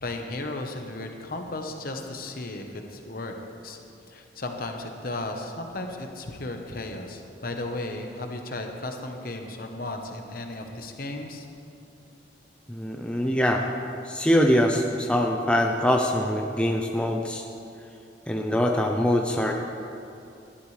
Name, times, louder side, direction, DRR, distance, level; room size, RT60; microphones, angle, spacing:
voice 1, 0.0-3.4 3.6-3.8 4.1-11.5, left 2 dB, 50° left, 4 dB, 1.1 m, -35 dB
voice 2, 12.7-13.6 14.0-17.5 18.3-19.5, equal, 5° left, 1 dB, 0.5 m, -23 dB
18.0 x 11.5 x 3.3 m, 2.6 s
head